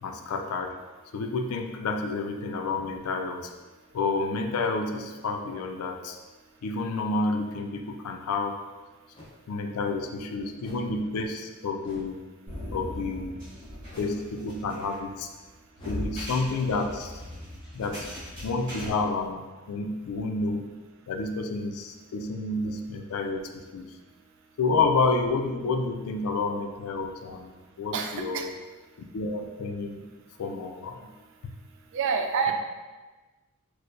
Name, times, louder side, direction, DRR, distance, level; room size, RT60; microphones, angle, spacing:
voice 1, 0.0-0.7 1.1-3.5 3.9-6.2 6.6-8.6 9.5-12.2 12.7-13.4 14.0-15.3 15.9-17.2 17.7-18.1 18.4-20.7 21.1-23.9 24.6-27.5 27.8-28.5 29.1-30.1 30.4-31.1 31.4-31.5, left 3 dB, 80° left, 5 dB, 0.4 m, -29 dB
sound 1, 9.1-9.4 10.6-11.0 11.8-12.2 13.9-14.3 15.8-16.2 17.8-18.0, left 1 dB, 20° left, 0.5 m, -48 dB
sound 2, 12.5-18.9, left 1 dB, 40° right, 1.5 m, -39 dB
voice 2, 27.9-28.5 31.0-31.4 31.7-32.5, right 5 dB, 55° right, 5 dB, 0.3 m, -29 dB
4.4 x 2.1 x 2.5 m, 1.3 s
head